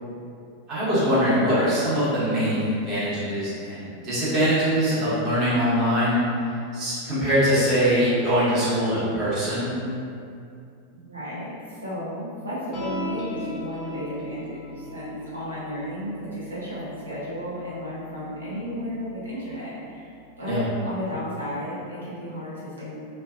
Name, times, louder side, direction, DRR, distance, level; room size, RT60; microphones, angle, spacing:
voice 1, 0.7-6.2 6.7-9.7 20.5-20.6, equal, 35° right, -11 dB, 1.0 m, -22 dB
voice 2, 10.9-20.1 20.4-22.9, equal, 75° right, -10 dB, 0.7 m, -33 dB
sound 1, 12.7-19.4, left 1 dB, 35° left, 0.5 m, -38 dB
2.5 x 2.1 x 2.4 m, 2.5 s
figure-of-eight pair, 90°, 0 cm